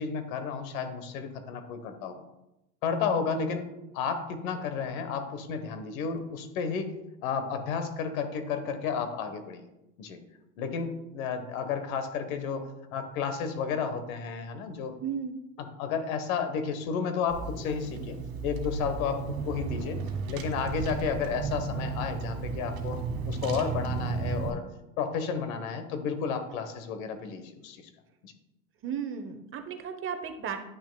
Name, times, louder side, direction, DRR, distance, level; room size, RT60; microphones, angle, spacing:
voice 1, 0.0-2.2 2.8-3.7 3.9-9.6 10.0-10.2 10.6-15.0 15.8-18.2 18.4-20.0 20.3-24.6 25.0-27.9 28.2-28.3, left 6 dB, 70° left, 8 dB, 1.2 m, -32 dB
voice 2, 15.0-15.4 28.8-30.6, right 7 dB, 30° right, 8 dB, 0.8 m, -34 dB
Car / Engine, 17.3-24.5, right 4 dB, 65° right, 1.5 m, -34 dB
10.0 x 6.0 x 2.2 m, 0.89 s
hypercardioid pair, 105°, 42 cm